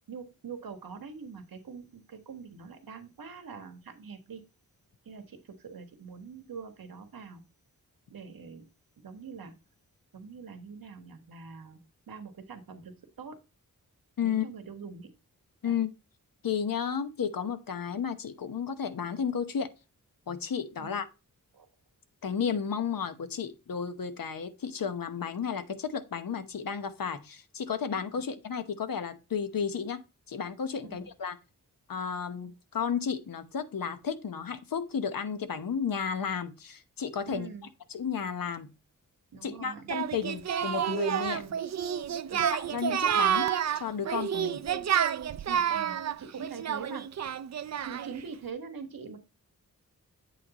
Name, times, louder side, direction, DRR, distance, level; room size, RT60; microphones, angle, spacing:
voice 1, 0.1-4.4 5.0-7.4 8.1-8.7 9.0-9.5 10.1-11.8 12.1-13.4 14.2-15.1 15.6-15.8 20.8-20.9 21.5-21.7 30.8-31.1 37.3-37.7 39.3-39.9 41.3-41.6 42.3-42.5 44.7-44.8 45.5-47.1 47.8-49.2, right 5 dB, 90° right, 1.4 m, -44 dB
voice 2, 16.4-19.7 20.3-21.1 22.2-30.0 30.3-31.4 31.9-37.5 37.9-38.7 39.4-41.4 42.5-43.5 43.7-44.6, left 7 dB, 75° left, 1.0 m, -33 dB
Singing, 39.9-48.2, right 9 dB, 50° right, 0.4 m, -29 dB
8.5 x 3.2 x 4.0 m
wide cardioid pair, 85°, 34 cm